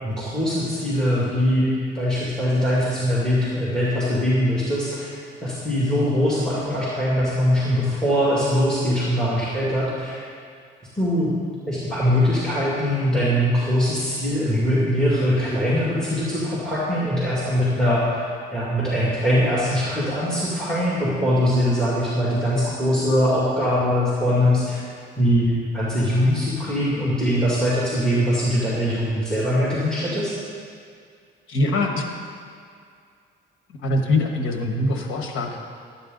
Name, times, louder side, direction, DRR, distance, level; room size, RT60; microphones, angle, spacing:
voice 1, 0.0-5.1 5.4-10.3 10.9-11.3 11.7-24.8 25.2-30.3, equal, 5° left, -7 dB, 2.3 m, -22 dB
voice 2, 31.5-32.0 33.8-35.6, left 2 dB, 85° left, 3 dB, 1.3 m, -23 dB
12.5 x 8.7 x 3.9 m, 2.3 s
cardioid pair, 90°, 20 cm